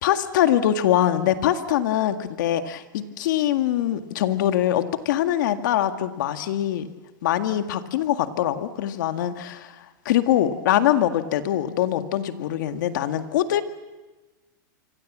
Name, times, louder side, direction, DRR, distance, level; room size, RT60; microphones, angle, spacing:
voice 1, 0.0-6.9 7.2-9.8 10.1-13.6, left 11 dB, 65° left, 7 dB, 2.0 m, -23 dB
26.0 x 25.0 x 7.5 m, 1.2 s
supercardioid pair, 150°, 11 cm